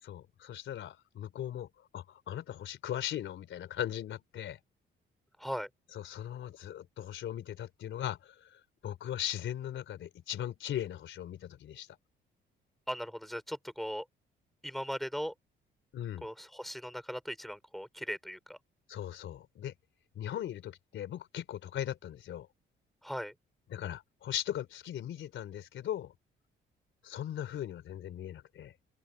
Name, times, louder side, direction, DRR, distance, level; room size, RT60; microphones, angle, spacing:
voice 1, 0.0-4.6 5.9-11.9 15.9-16.3 18.9-19.7 20.2-22.5 23.7-26.1 27.0-28.7, left 11 dB, 75° left, 3.9 m, -39 dB
voice 2, 5.4-5.7 12.9-14.1 14.6-15.3 16.2-18.6 23.0-23.3, equal, ahead, 5.2 m, -38 dB
open air
cardioid pair, 90°, 20 cm